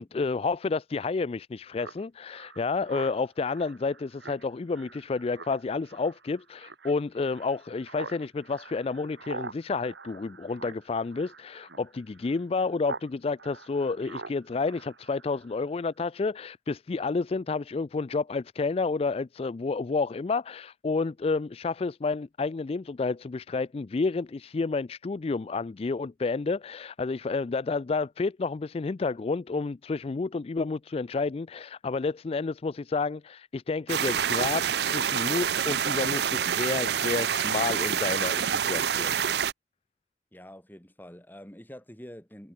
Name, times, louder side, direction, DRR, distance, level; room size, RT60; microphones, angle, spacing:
voice 1, 0.0-39.2, left 4 dB, 35° left, 0.4 m, -30 dB
Speech synthesizer, 1.8-13.1 13.4-15.6, right 4 dB, 85° right, 2.7 m, -45 dB
sound 1, 33.9-39.5, right 8 dB, 65° right, 0.6 m, -27 dB
voice 2, 40.3-42.5, equal, 10° left, 3.1 m, -46 dB
head